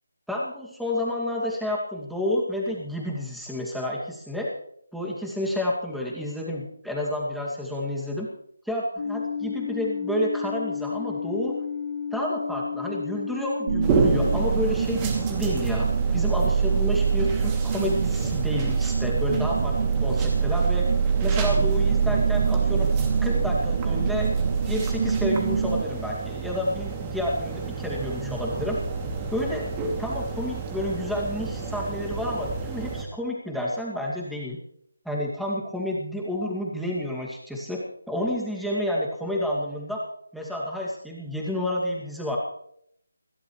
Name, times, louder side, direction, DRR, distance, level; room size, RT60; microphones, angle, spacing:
voice 1, 0.3-4.5 4.9-8.3 8.6-11.6 12.1-20.9 21.2-22.9 23.2-24.3 24.6-28.8 29.3-34.6 35.0-40.0 40.3-42.4, left 1 dB, ahead, -4 dB, 2.3 m, -30 dB
sound 1, 9.0-14.4, left 6 dB, 45° left, 4.1 m, -32 dB
sound 2, 13.7-25.8, right 6 dB, 40° right, 0.5 m, -24 dB
sound 3, 13.8-33.0, right 5 dB, 15° right, 2.6 m, -31 dB
29.5 x 12.5 x 3.2 m, 0.72 s
figure-of-eight pair, 165°, 0 cm